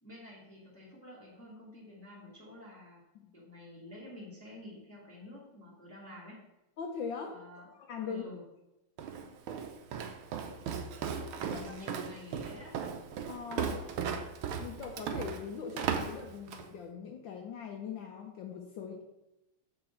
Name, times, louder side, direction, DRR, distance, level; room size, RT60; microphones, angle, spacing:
voice 1, 0.0-3.0 3.3-6.4 7.3-7.7 8.0-8.4 11.4-12.8, left 1 dB, 10° left, -4 dB, 1.3 m, -49 dB
voice 2, 6.8-7.4 7.8-8.2 11.5-11.8 13.3-13.8 14.5-19.0, left 6 dB, 70° left, 3 dB, 1.3 m, -41 dB
Walk footsteps, 9.0-16.7, right 7 dB, 80° right, 1.5 m, -37 dB
7.0 x 4.8 x 4.3 m, 0.95 s
omnidirectional pair, 2.4 m